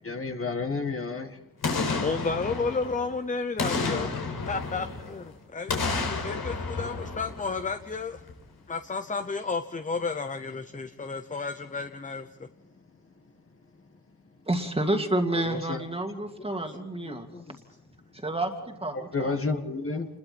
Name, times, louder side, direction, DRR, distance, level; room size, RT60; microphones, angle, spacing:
voice 1, 0.0-1.3 15.3-15.8 19.1-20.1, left 3 dB, 35° left, 6 dB, 1.8 m, -30 dB
Boom, 1.6-3.1 3.6-5.2 5.7-7.9 8.3-8.4, left 4 dB, 85° left, 4.6 m, -31 dB
voice 2, 2.0-4.2 4.5-8.2 8.7-12.5 16.5-16.6 17.0-17.6, left 4 dB, 20° left, 9 dB, 0.8 m, -32 dB
voice 3, 14.5-17.3 18.2-19.4, right 1 dB, 15° right, 4 dB, 2.4 m, -29 dB
29.0 x 21.0 x 4.3 m, 0.89 s
wide cardioid pair, 130°, 37 cm